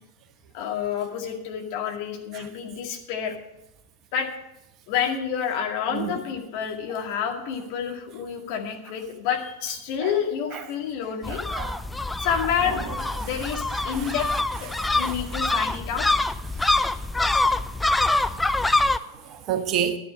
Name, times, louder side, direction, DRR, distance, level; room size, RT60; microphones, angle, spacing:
voice 1, 0.5-3.4 4.1-4.3 4.9-11.4 12.2-12.9 13.2-14.3 14.6-16.1, left 8 dB, 45° left, 2.1 m, -29 dB
sound 1, 11.2-19.0, left 2 dB, 5° left, 0.4 m, -25 dB
voice 2, 11.3-11.8 12.3-12.4 12.7-12.8 13.2-13.3 13.8-14.1 14.8-15.2 16.6-16.7 18.3-18.5 19.1-20.0, right 9 dB, 35° right, 1.1 m, -30 dB
11.0 x 9.5 x 6.3 m
figure-of-eight pair, 90°, 0 cm